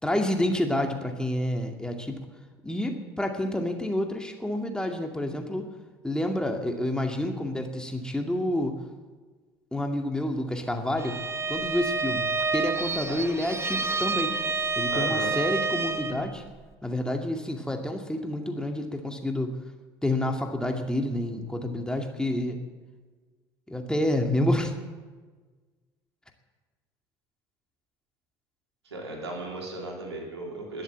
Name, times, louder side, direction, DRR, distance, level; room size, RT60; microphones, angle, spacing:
voice 1, 0.0-2.2 2.6-5.7 6.0-8.8 9.7-11.2 11.5-14.4 14.8-16.4 16.8-19.5 20.0-22.6 23.7-24.7, left 1 dB, 5° left, 3 dB, 2.3 m, -29 dB
Bowed string instrument, 11.0-16.2, right 4 dB, 20° right, 1.3 m, -29 dB
voice 2, 14.9-15.3 28.8-30.8, right 2 dB, 85° right, 0 dB, 3.3 m, -36 dB
20.5 x 7.8 x 7.6 m, 1.4 s
figure-of-eight pair, 60°, 14 cm